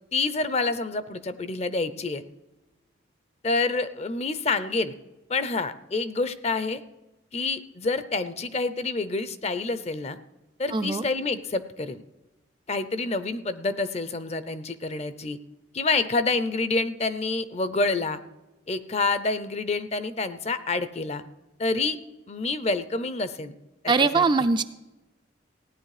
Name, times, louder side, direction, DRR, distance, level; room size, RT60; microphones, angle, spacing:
voice 1, 0.1-2.2 3.4-4.9 5.3-6.8 7.3-10.2 10.6-12.0 12.7-15.4 15.7-18.2 18.7-21.2 21.6-22.0 22.3-23.5 23.8-24.2, left 3 dB, 35° left, 13 dB, 0.6 m, -27 dB
voice 2, 10.7-11.0 23.9-24.6, right 4 dB, 25° right, 9 dB, 0.4 m, -21 dB
16.0 x 9.7 x 4.9 m, 1.0 s
head